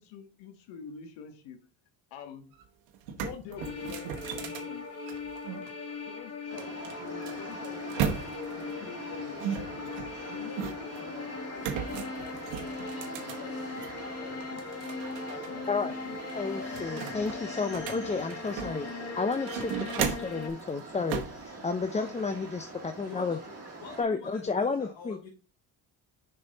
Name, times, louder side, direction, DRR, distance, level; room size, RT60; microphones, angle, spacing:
voice 1, 0.0-1.6 2.1-2.5 3.1-4.8 6.0-9.9 10.3-13.8 14.2-14.6 15.2-16.2, left 6 dB, 80° left, 7 dB, 1.3 m, -47 dB
sound 1, 2.5-2.6 2.9-5.7 6.6-8.6 9.4-11.0 11.6-14.0 14.4-15.5 15.8-15.9 16.3-18.9 19.3-20.4 21.1-21.4, right 8 dB, 80° right, 1.1 m, -36 dB
sound 2, 3.6-20.5, left 4 dB, 35° left, 1.9 m, -39 dB
sound 3, 6.5-24.0, right 3 dB, 35° right, 1.9 m, -44 dB
voice 2, 16.4-18.9 19.2-23.4 24.0-25.2, left 4 dB, 15° left, 8 dB, 0.5 m, -31 dB
voice 3, 21.5-22.3 22.7-22.8 23.0-25.3, left 6 dB, 65° left, -2 dB, 2.1 m, -47 dB
6.3 x 4.6 x 3.8 m, 0.33 s
supercardioid pair, 75°, 45 cm